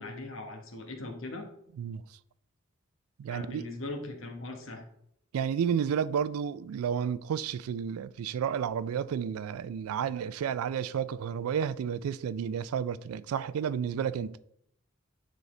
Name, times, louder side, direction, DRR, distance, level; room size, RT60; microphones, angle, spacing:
voice 1, 0.0-1.5 3.3-4.8, left 2 dB, 70° left, 1.1 m, -40 dB
voice 2, 3.2-3.6 5.3-14.4, right 7 dB, 90° right, 0.3 m, -31 dB
9.3 x 4.0 x 3.2 m
head